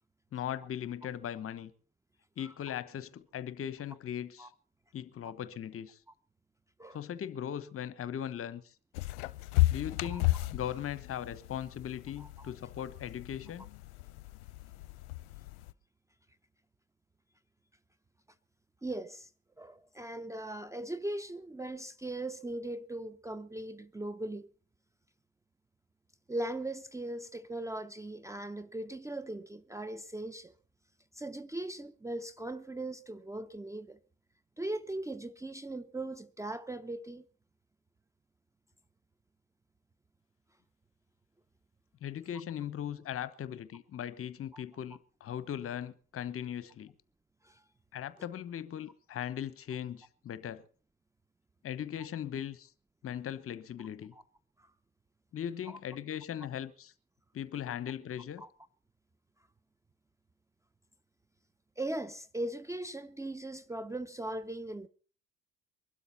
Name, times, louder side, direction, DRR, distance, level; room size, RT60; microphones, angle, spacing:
voice 1, 0.3-1.7 2.4-4.5 4.9-6.0 6.9-8.7 9.7-13.7 42.0-46.9 47.9-50.7 51.6-52.7 53.0-54.1 55.3-56.9 57.3-58.4, left 10 dB, 35° left, 1.1 m, -39 dB
sound 1, 8.9-15.7, left 18 dB, 60° left, 0.7 m, -34 dB
voice 2, 12.2-12.5 18.8-19.3 19.6-24.5 26.3-30.5 31.1-34.0 34.6-37.2 44.5-44.6 47.4-47.6 54.1-54.2 54.6-54.7 55.7-55.8 57.7-57.8 58.4-58.5 61.8-64.9, right 1 dB, 10° right, 0.8 m, -39 dB
23.0 x 12.5 x 4.2 m
figure-of-eight pair, 60°, 39 cm